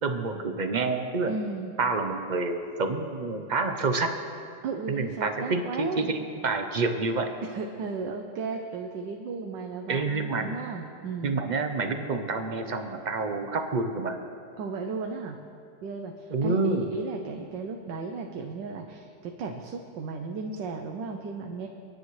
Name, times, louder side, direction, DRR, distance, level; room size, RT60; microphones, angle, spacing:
voice 1, 0.0-1.3 1.8-4.1 4.9-7.3 9.9-10.5 11.2-14.2 16.3-16.9, right 3 dB, 55° right, 6 dB, 0.4 m, -28 dB
voice 2, 1.3-1.7 4.6-6.2 7.5-11.3 14.6-15.4 15.8-21.7, right 4 dB, 75° right, 3 dB, 1.5 m, -35 dB
30.0 x 10.5 x 3.2 m, 2.5 s
omnidirectional pair, 2.0 m